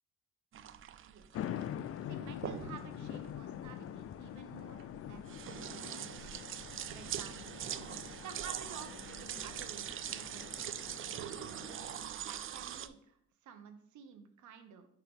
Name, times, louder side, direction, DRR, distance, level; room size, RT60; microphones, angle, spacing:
sound 1, 0.5-12.9, right 10 dB, 45° right, 0.4 m, -43 dB
sound 2, 1.3-12.1, left 10 dB, 50° left, 0.4 m, -45 dB
voice 1, 2.1-6.3 6.9-7.6 8.2-11.4 12.2-13.2 13.4-14.9, right 7 dB, 75° right, 9 dB, 0.9 m, -52 dB
4.8 x 4.6 x 5.2 m, 0.71 s
cardioid pair, 90°, 30 cm